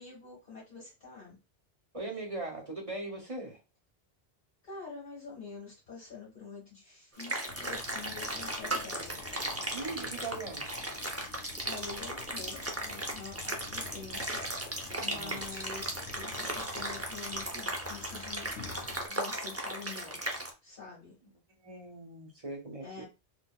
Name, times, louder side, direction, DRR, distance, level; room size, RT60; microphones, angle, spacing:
voice 1, 0.0-1.4 4.6-9.2 11.6-14.4 15.0-18.8 19.1-20.2 20.6-21.1 22.8-23.0, left 4 dB, 50° left, -6 dB, 1.7 m, -46 dB
voice 2, 1.9-3.6 9.7-10.7 15.0-15.4 21.6-23.0, right 2 dB, 35° right, 0 dB, 0.9 m, -40 dB
sound 1, 7.2-20.5, right 1 dB, 20° right, 0.5 m, -36 dB
sound 2, 7.5-19.1, left 4 dB, 80° left, 1.0 m, -49 dB
3.7 x 2.4 x 2.3 m, 0.26 s
omnidirectional pair, 1.1 m